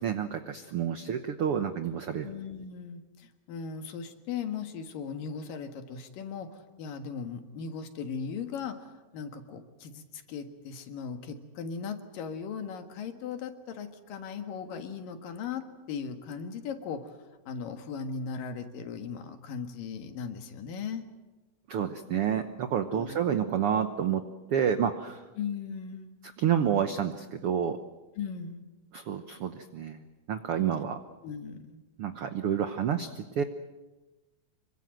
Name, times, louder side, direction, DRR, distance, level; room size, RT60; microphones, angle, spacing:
voice 1, 0.0-2.3 21.7-24.2 24.5-25.2 26.4-27.8 28.9-30.0 30.3-31.0 32.0-33.4, right 8 dB, 85° right, 8 dB, 1.2 m, -29 dB
voice 2, 2.2-17.2 17.5-21.0 22.9-23.2 25.4-26.1 28.2-28.6 31.2-31.8, left 6 dB, 75° left, 7 dB, 3.3 m, -38 dB
26.5 x 23.0 x 7.7 m, 1.1 s
omnidirectional pair, 4.1 m